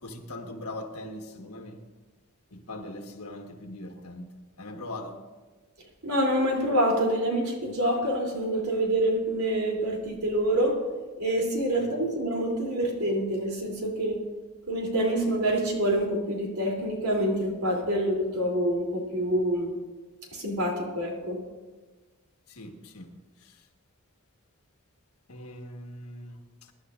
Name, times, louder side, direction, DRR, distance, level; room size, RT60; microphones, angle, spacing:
voice 1, 0.0-1.8 2.5-4.3 4.6-5.2 22.5-23.7 25.3-26.7, left 1 dB, 85° left, 4 dB, 1.5 m, -41 dB
voice 2, 6.0-10.7 11.2-14.2 14.7-19.7 20.3-21.4, right 1 dB, 90° right, -1 dB, 3.1 m, -26 dB
22.5 x 11.5 x 2.5 m, 1.3 s
head